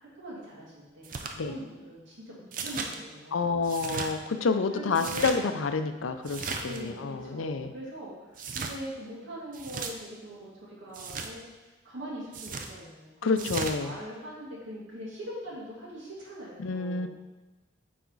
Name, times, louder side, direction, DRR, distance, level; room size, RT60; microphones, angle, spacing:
voice 1, 0.0-3.5 4.3-4.5 4.7-5.5 6.6-17.1, equal, 70° right, -6 dB, 2.3 m, -42 dB
sound 1, 1.0-1.3 2.5-2.9 3.6-4.1 4.9-5.4 6.2-6.8 8.3-8.8 9.5-9.9 10.9-11.3 12.3-12.7 13.4-13.8, right 4 dB, 40° right, 0.5 m, -35 dB
voice 2, 3.3-7.7 13.2-14.0 16.6-17.1, left 4 dB, 80° left, 9 dB, 0.5 m, -29 dB
9.2 x 4.2 x 3.9 m, 1.2 s
head